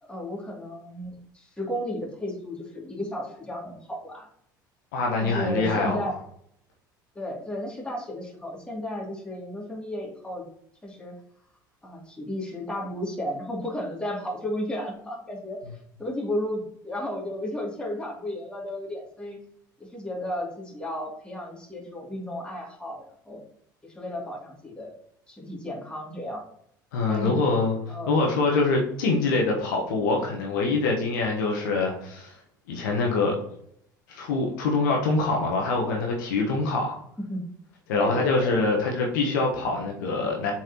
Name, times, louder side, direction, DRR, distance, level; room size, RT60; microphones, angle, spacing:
voice 1, 0.0-4.3 5.2-6.1 7.1-10.4 10.8-11.2 11.8-15.6 16.0-19.4 19.9-23.4 23.8-24.9 25.3-26.4 27.1-27.5 27.9-28.2 37.3-37.4 37.9-38.6, left 1 dB, 10° left, -3 dB, 2.6 m, -33 dB
voice 2, 4.9-6.1 26.9-27.8 28.1-32.3 32.7-33.4 34.1-37.0 37.9-40.5, left 3 dB, 70° left, 0 dB, 1.2 m, -24 dB
7.5 x 4.6 x 2.9 m, 0.69 s
figure-of-eight pair, 65°, 11 cm